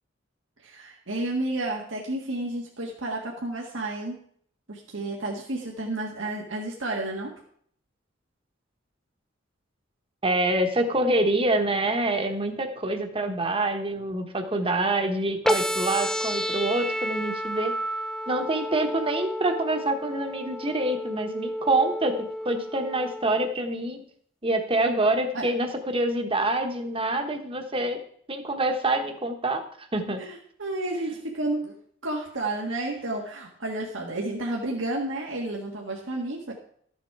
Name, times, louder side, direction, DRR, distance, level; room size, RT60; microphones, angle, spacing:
voice 1, 0.6-4.2 4.7-7.3 25.3-25.5 30.2-31.8 32.0-36.5, right 2 dB, 80° right, -1 dB, 1.7 m, -31 dB
voice 2, 10.2-17.7 18.3-24.0 24.4-28.0 28.3-30.2, right 2 dB, 30° right, 5 dB, 1.3 m, -26 dB
sound 1, 15.5-23.5, equal, 5° left, 0.6 m, -31 dB
13.5 x 7.4 x 4.7 m, 0.62 s
head